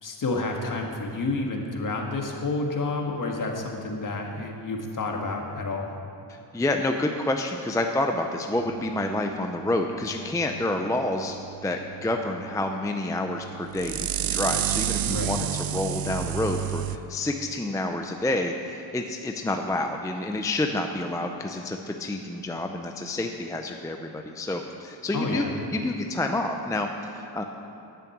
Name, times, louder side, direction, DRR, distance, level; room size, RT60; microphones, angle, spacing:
voice 1, 0.0-5.9 15.1-15.3 25.1-25.5, left 3 dB, 45° left, 1 dB, 1.7 m, -30 dB
voice 2, 6.5-11.4 11.6-27.4, left 2 dB, 10° left, 4 dB, 0.5 m, -28 dB
sound 1, 8.6-17.0, right 11 dB, 55° right, 0.5 m, -32 dB
10.5 x 8.9 x 8.5 m, 2.8 s
wide cardioid pair, 155°, 44 cm